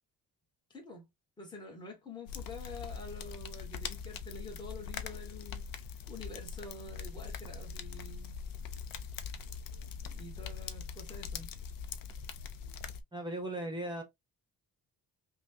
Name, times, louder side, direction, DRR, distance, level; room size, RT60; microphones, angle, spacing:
voice 1, 0.7-1.0 1.4-5.6 6.1-8.4 10.0-11.5, left 2 dB, 10° left, 1.3 m, -47 dB
sound 1, 2.3-13.0, left 6 dB, 65° left, 0.6 m, -42 dB
voice 2, 13.1-14.0, right 1 dB, 15° right, 0.9 m, -37 dB
5.5 x 2.2 x 2.7 m
wide cardioid pair, 180°, 36 cm